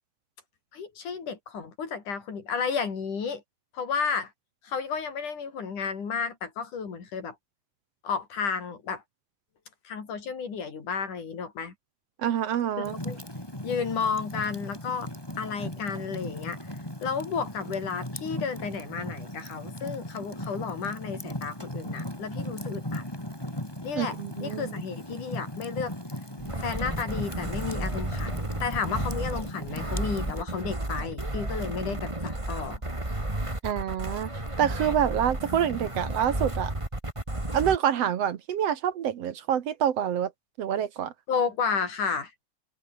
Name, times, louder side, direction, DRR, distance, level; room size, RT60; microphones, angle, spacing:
voice 1, 0.7-3.4 3.7-4.3 4.6-7.4 8.0-9.0 9.9-11.7 12.8-13.2 13.6-15.1 15.4-16.6 17.0-23.1 23.8-25.9 26.6-32.8 41.3-42.3, left 6 dB, 90° left, 5.6 m, -32 dB
voice 2, 12.2-13.0 23.9-24.7 33.6-34.3 34.6-36.7 37.5-40.3 40.6-41.1, right 9 dB, 60° right, 2.1 m, -27 dB
Fire, 12.8-30.4, left 1 dB, 5° left, 5.3 m, -37 dB
sound 1, 26.4-37.8, right 1 dB, 10° right, 3.0 m, -32 dB
omnidirectional pair, 3.5 m